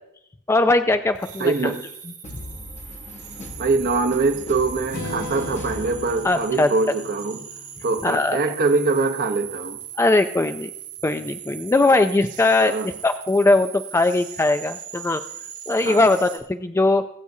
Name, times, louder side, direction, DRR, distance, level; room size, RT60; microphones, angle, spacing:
voice 1, 0.5-1.7 6.2-6.7 8.0-8.5 10.0-10.7 11.0-15.2 15.7-17.0, left 2 dB, 10° left, 0.3 m, -20 dB
sound 1, 1.2-16.4, right 10 dB, 65° right, 2.4 m, -39 dB
voice 2, 1.4-1.8 3.6-7.4 7.8-9.8 12.6-12.9 15.8-16.0, right 3 dB, 45° right, 0.9 m, -23 dB
sound 2, 2.2-6.7, left 1 dB, 30° left, 0.9 m, -39 dB
Strum, 4.9-8.8, left 1 dB, 85° left, 3.7 m, -38 dB
19.5 x 8.2 x 2.7 m
head